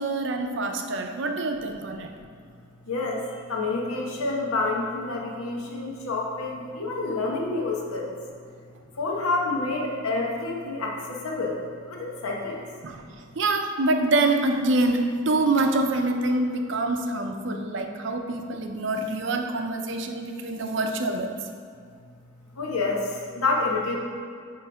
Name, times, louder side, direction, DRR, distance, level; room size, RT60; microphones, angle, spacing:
voice 1, 0.0-2.1 12.8-13.0 13.4-21.4, right 2 dB, 55° right, 5 dB, 0.5 m, -25 dB
voice 2, 2.9-8.1 8.9-11.6 11.9-12.6 22.6-24.0, left 3 dB, 90° left, -1 dB, 1.1 m, -28 dB
9.2 x 3.2 x 4.8 m, 2.2 s
head